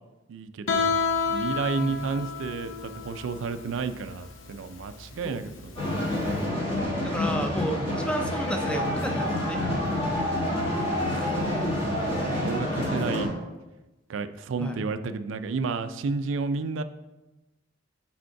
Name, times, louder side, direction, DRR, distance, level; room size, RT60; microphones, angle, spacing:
voice 1, 0.3-6.2 11.1-11.3 11.8-13.3 14.1-16.8, right 4 dB, 75° right, 11 dB, 0.4 m, -32 dB
Guitar, 0.7-6.4, left 5 dB, 85° left, 0.7 m, -30 dB
sound 1, 5.8-13.3, left 1 dB, 30° left, 1.5 m, -28 dB
voice 2, 7.0-9.6 14.6-14.8, equal, 5° left, 4 dB, 0.5 m, -32 dB
5.1 x 3.5 x 5.7 m, 1.1 s
head